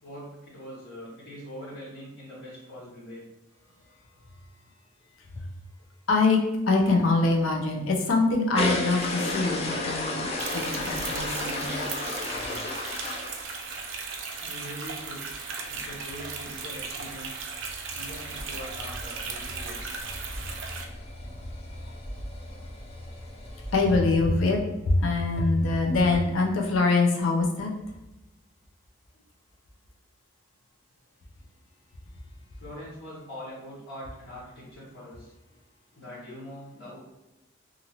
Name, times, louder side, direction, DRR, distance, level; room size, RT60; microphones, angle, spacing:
voice 1, 0.0-3.2 14.4-15.2 15.7-17.5 17.9-19.9 32.6-35.3 35.9-37.0, equal, 60° left, -9 dB, 1.3 m, -42 dB
voice 2, 6.1-6.4 6.7-10.3 10.5-11.9 23.7-24.6 24.9-27.7, left 3 dB, 85° left, 0 dB, 0.6 m, -24 dB
sound 1, 8.5-14.0 14.4-14.7 15.0-15.1 15.3-15.4 15.6-23.9, left 1 dB, 30° left, 0.5 m, -34 dB
sound 2, 10.4-20.8, right 5 dB, 65° right, 0.4 m, -37 dB
2.8 x 2.5 x 2.9 m, 0.96 s
head